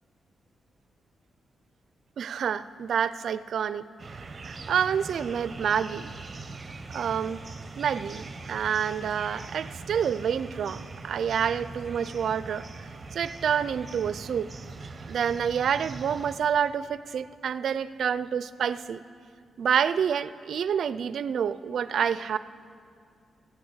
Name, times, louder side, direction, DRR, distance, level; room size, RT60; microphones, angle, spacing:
voice 1, 2.2-3.8 4.5-6.1 6.9-7.4 7.8-12.6 13.1-14.5 15.1-19.0 19.6-22.4, right 8 dB, 60° right, 15 dB, 0.4 m, -28 dB
sound 1, 4.0-16.4, right 3 dB, 25° right, 0.8 m, -41 dB
15.0 x 8.9 x 8.1 m, 2.3 s
wide cardioid pair, 175°, 0 cm